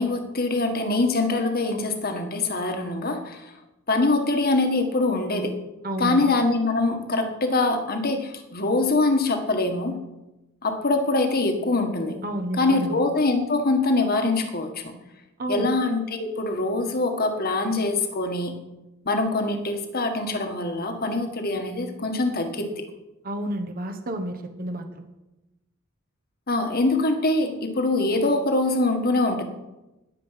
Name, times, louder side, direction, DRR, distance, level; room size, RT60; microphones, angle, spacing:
voice 1, 0.0-3.5 3.9-5.5 6.0-10.0 10.6-12.2 12.6-14.8 15.5-18.5 19.0-22.7 26.5-29.4, left 2 dB, 45° left, 5 dB, 1.7 m, -24 dB
voice 2, 5.8-6.2 12.2-13.0 15.4-15.7 23.2-24.9, right 1 dB, 45° right, 6 dB, 1.3 m, -30 dB
20.0 x 7.6 x 5.9 m, 1.0 s
head